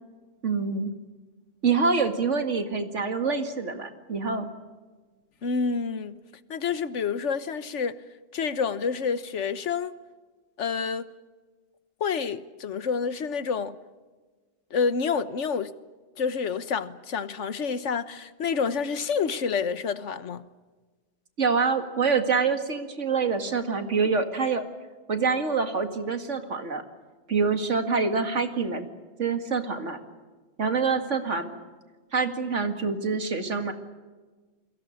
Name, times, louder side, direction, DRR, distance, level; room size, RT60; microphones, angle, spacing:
voice 1, 0.4-0.9 1.6-4.5 21.4-24.6 25.1-26.8 27.3-28.9 29.2-30.0 30.6-31.5 32.1-33.7, right 5 dB, 90° right, 2.4 m, -26 dB
voice 2, 5.4-6.2 6.5-8.0 8.3-9.9 10.6-11.1 12.0-13.8 14.7-15.7 16.2-20.4, left 5 dB, 80° left, 1.4 m, -28 dB
29.5 x 23.0 x 6.5 m
omnidirectional pair, 1.2 m